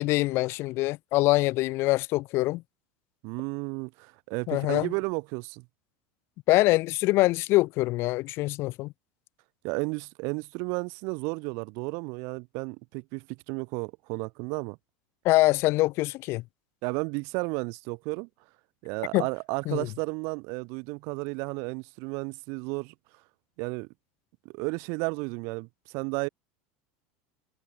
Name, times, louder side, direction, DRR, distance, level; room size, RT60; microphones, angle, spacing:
voice 1, 0.0-2.6 4.5-4.9 6.5-8.9 15.2-16.4 19.1-19.3 19.7-19.9, left 20 dB, 55° left, 4.6 m, -24 dB
voice 2, 3.2-5.6 9.6-14.8 16.8-18.3 18.8-22.9 23.6-23.9 24.5-25.7 25.9-26.3, right 31 dB, 65° right, 7.3 m, -33 dB
supercardioid pair, 125°, 5 cm